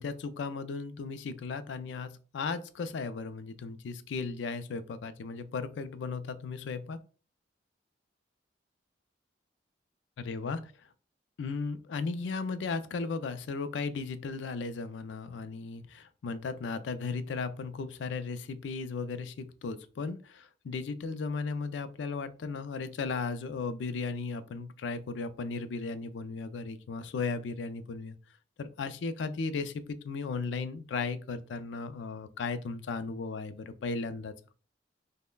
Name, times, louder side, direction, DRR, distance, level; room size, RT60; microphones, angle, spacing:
voice 1, 0.0-7.0 10.2-10.7 11.4-28.2 28.6-34.3, left 4 dB, 80° left, 11 dB, 0.4 m, -36 dB
5.3 x 2.1 x 2.2 m, 0.37 s
head